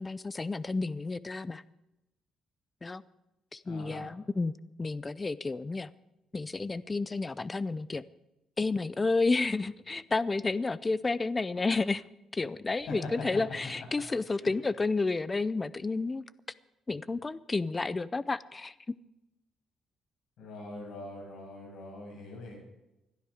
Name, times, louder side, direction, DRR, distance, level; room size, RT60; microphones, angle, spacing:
voice 1, 0.0-1.6 2.8-3.0 3.5-4.5 4.8-5.9 6.3-8.0 8.6-12.0 12.3-16.2 16.9-18.7, left 3 dB, 15° left, 17 dB, 0.5 m, -31 dB
voice 2, 3.6-4.1 12.8-13.2 14.3-14.5 20.4-22.6, left 2 dB, 70° left, 1 dB, 7.4 m, -42 dB
21.0 x 12.5 x 5.0 m, 0.94 s
cardioid pair, 165°, 0 cm